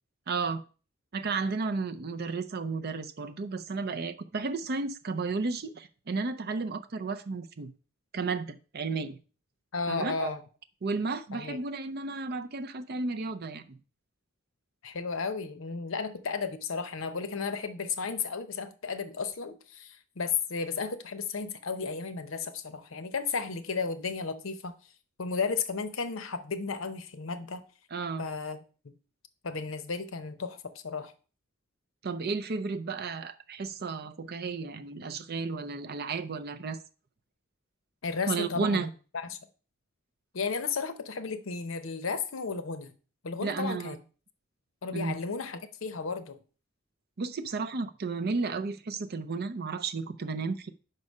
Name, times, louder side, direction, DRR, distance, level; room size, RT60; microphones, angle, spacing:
voice 1, 0.3-0.6 1.1-7.7 8.1-9.2 9.9-10.3 10.8-13.8 27.9-28.3 32.0-36.8 38.3-38.9 43.4-43.9 44.9-45.2 47.2-50.7, right 4 dB, 50° right, 0.5 m, -33 dB
voice 2, 9.7-10.4 11.3-11.6 14.8-24.7 25.2-27.6 28.2-28.6 29.4-31.1 38.0-38.9 39.3-39.4 40.3-42.9 43.2-44.0 44.8-46.4, left 5 dB, 70° left, 0.7 m, -34 dB
5.4 x 4.9 x 5.3 m
head